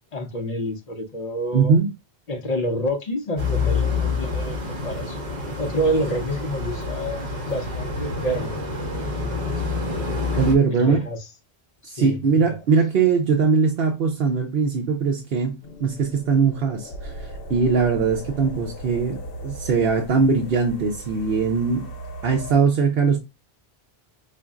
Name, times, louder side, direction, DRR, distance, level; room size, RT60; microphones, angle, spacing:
voice 1, 0.1-1.8 2.3-5.2 5.6-8.6 10.7-11.2 11.8-12.2, equal, 45° left, 0.7 m, -28 dB
voice 2, 1.5-1.9 10.4-11.1 11.8-21.9 22.2-23.2, right 5 dB, 70° right, 0.8 m, -21 dB
sound 1, 3.4-10.5, left 3 dB, 45° right, 1.2 m, -27 dB
sound 2, 15.6-22.5, right 1 dB, 65° left, 0.9 m, -38 dB
5.1 x 2.5 x 2.3 m
omnidirectional pair, 1.0 m